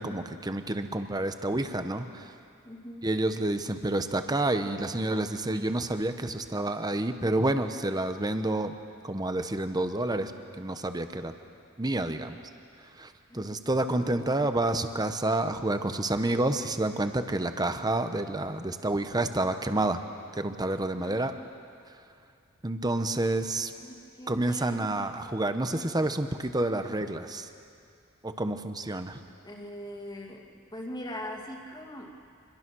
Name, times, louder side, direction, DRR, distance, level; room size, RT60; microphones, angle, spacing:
voice 1, 0.0-2.3 3.0-8.7 9.0-11.3 11.8-12.4 12.8-20.0 20.3-21.3 22.6-23.7 24.3-27.5 28.2-29.2, right 2 dB, 20° right, 8 dB, 1.0 m, -29 dB
voice 2, 2.6-3.1 13.3-13.6 14.0-14.2 17.4-17.5 21.0-21.3 23.2-25.0 29.4-32.1, left 1 dB, 20° left, 1 dB, 2.3 m, -42 dB
26.0 x 22.0 x 6.2 m, 2.4 s
head